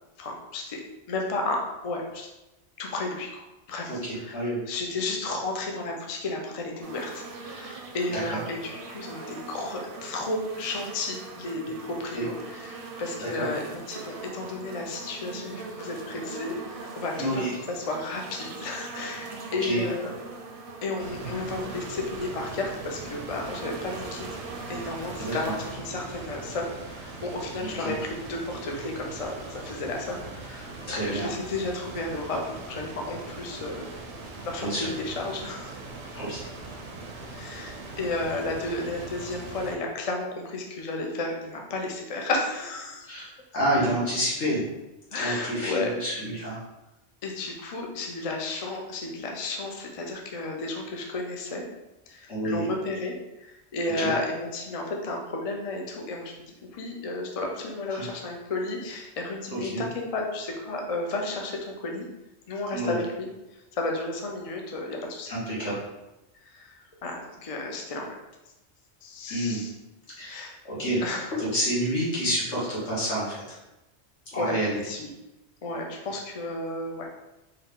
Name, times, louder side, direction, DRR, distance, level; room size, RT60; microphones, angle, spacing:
voice 1, 0.2-0.8 1.1-2.3 2.8-4.3 4.7-20.1 20.8-24.4 24.7-32.4 32.7-33.9 34.4-35.7 37.3-43.1 45.1-45.9 47.2-51.7 52.1-62.1 62.5-63.3 63.7-65.3 66.4-68.2 69.0-69.7 70.2-70.6 71.0-71.3 74.3-74.6 74.8-75.1 75.6-77.1, left 2 dB, 45° left, 1 dB, 0.5 m, -33 dB
voice 2, 3.9-4.6 8.1-8.4 12.1-12.3 13.2-13.5 17.2-17.5 19.6-19.9 25.2-25.5 27.6-27.9 30.9-31.3 34.6-34.9 36.1-36.4 43.1-44.6 45.2-46.6 52.3-52.7 53.8-54.1 57.9-58.0 59.5-59.8 62.7-63.0 65.3-65.8 69.3-69.6 70.2-71.0 71.3-73.6 74.3-74.8, right 1 dB, 80° left, -7 dB, 1.8 m, -29 dB
sound 1, 6.8-25.7, right 4 dB, 60° right, 0.7 m, -41 dB
sound 2, 21.0-39.8, right 3 dB, 85° right, 0.9 m, -41 dB
3.9 x 2.6 x 3.6 m, 0.98 s
omnidirectional pair, 1.2 m